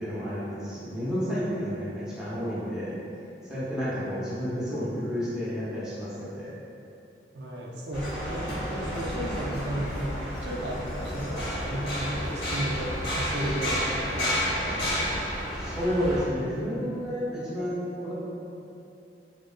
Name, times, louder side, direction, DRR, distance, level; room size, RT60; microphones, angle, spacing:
voice 1, 0.0-3.0 3.4-6.5 15.5-18.1, equal, 5° right, -11 dB, 0.6 m, -31 dB
voice 2, 7.3-15.2, right 1 dB, 70° right, -2 dB, 0.4 m, -34 dB
sound 1, 7.9-16.2, equal, 70° left, 1.0 m, -31 dB
2.3 x 2.2 x 2.4 m, 2.7 s
head